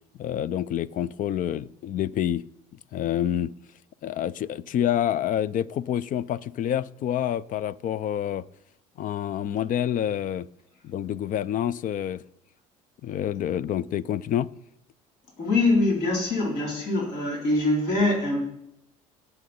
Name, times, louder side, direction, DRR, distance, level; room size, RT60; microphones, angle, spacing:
voice 1, 0.2-2.5 2.9-3.5 4.0-8.4 9.0-10.5 10.8-12.2 13.0-14.5, left 10 dB, 50° left, 0.5 m, -27 dB
voice 2, 15.4-18.4, left 2 dB, 65° left, 3.7 m, -23 dB
18.0 x 6.8 x 4.2 m
hypercardioid pair, 70°, 18 cm